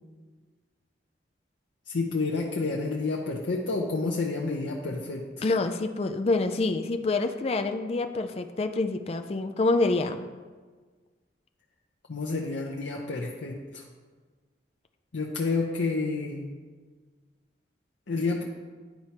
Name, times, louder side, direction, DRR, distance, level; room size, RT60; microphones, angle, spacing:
voice 1, 1.9-5.2 12.1-13.8 15.1-16.5 18.1-18.4, left 3 dB, 85° left, -2 dB, 0.6 m, -29 dB
voice 2, 5.4-10.2, left 3 dB, 35° left, 7 dB, 0.3 m, -27 dB
10.5 x 4.5 x 2.9 m, 1.4 s
head